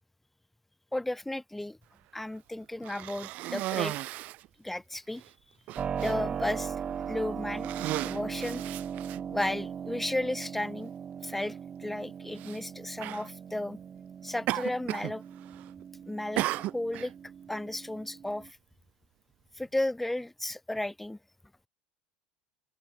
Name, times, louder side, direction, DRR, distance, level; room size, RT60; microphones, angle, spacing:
voice 1, 0.9-1.8 2.1-3.9 4.6-5.2 5.9-6.7 7.1-7.7 8.0-8.6 9.3-10.9 11.2-13.8 14.2-15.2 16.0-17.1 17.5-18.6 19.6-21.2, left 1 dB, 5° left, 3.0 m, -34 dB
Cough, 2.8-4.5 5.2-5.3 5.7-6.1 6.9-7.1 7.5-9.5 10.4-10.5 12.3-12.6 13.0-13.3 14.5-15.1 15.4-15.8 16.4-17.1, right 17 dB, 55° right, 1.0 m, -35 dB
Keyboard (musical), 5.8-18.5, right 7 dB, 30° right, 7.8 m, -39 dB
open air
supercardioid pair, 100°, 3 cm